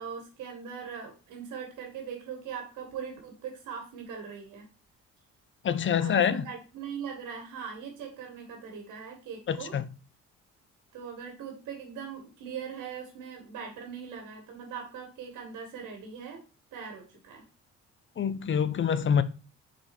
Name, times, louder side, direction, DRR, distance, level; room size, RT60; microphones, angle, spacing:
voice 1, 0.0-4.7 6.0-9.7 10.9-16.4 16.7-17.4, right 7 dB, 90° right, 1.8 m, -40 dB
voice 2, 5.6-6.4 9.5-9.8 18.2-19.2, left 7 dB, 40° left, 0.7 m, -26 dB
5.2 x 4.2 x 5.2 m
cardioid pair, 90°, 30 cm